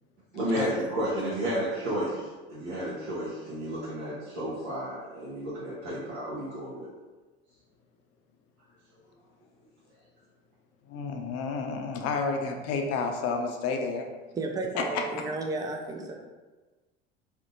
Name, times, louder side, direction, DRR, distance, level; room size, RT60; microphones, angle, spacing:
voice 1, 0.3-6.9, right 1 dB, 70° right, -9 dB, 0.8 m, -32 dB
voice 2, 10.9-14.1, left 4 dB, 50° left, 3 dB, 0.5 m, -30 dB
voice 3, 14.3-16.1, right 3 dB, 10° right, 2 dB, 0.3 m, -33 dB
2.6 x 2.1 x 2.7 m, 1.2 s
hypercardioid pair, 70°, 32 cm